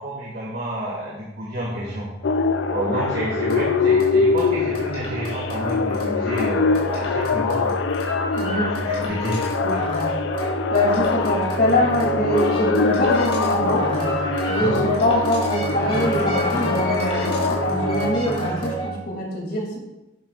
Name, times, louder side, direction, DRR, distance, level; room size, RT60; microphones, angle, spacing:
voice 1, 0.0-2.1 2.7-7.8 8.5-9.4 9.6-9.8 14.6-14.8, right 1 dB, 55° right, -6 dB, 2.1 m, -29 dB
sound 1, 1.6-19.0, right 1 dB, 30° left, 3.7 m, -28 dB
sound 2, 2.2-18.1, left 5 dB, 70° left, 0.5 m, -24 dB
voice 2, 8.4-8.7 10.7-13.9 14.5-19.8, left 1 dB, 55° left, -2 dB, 2.7 m, -23 dB
12.0 x 9.6 x 2.5 m, 0.99 s
head